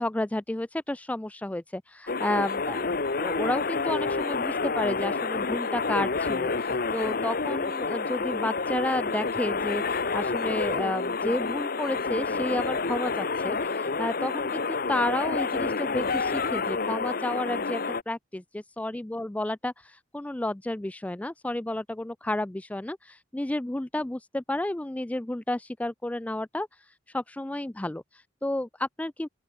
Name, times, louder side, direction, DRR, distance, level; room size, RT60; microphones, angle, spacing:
voice 1, 0.0-29.3, left 1 dB, 5° left, 0.3 m, -32 dB
sound 1, 2.1-18.0, left 4 dB, 50° left, 1.0 m, -29 dB
open air
head